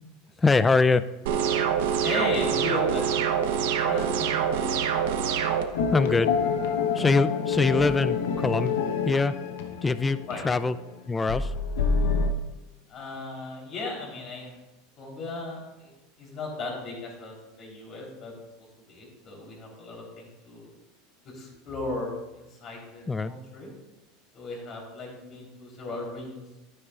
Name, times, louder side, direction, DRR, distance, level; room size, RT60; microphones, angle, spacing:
voice 1, 0.4-1.0 5.9-6.5 6.9-8.7 9.0-9.3 9.8-10.8 11.1-11.5 23.1-23.3, left 4 dB, 15° left, 15 dB, 0.3 m, -23 dB
sound 1, 1.3-5.6, right 8 dB, 75° right, 0.9 m, -25 dB
voice 2, 2.0-4.8 10.3-10.4 12.9-14.5 15.0-15.9 16.2-18.3 18.9-20.7 21.2-23.7 24.3-26.5, left 2 dB, 40° left, -2 dB, 3.5 m, -36 dB
sound 2, 5.7-10.9 11.3-12.3, left 5 dB, 85° left, 0.9 m, -27 dB
11.0 x 9.7 x 2.4 m, 1.0 s
supercardioid pair, 125°, 0 cm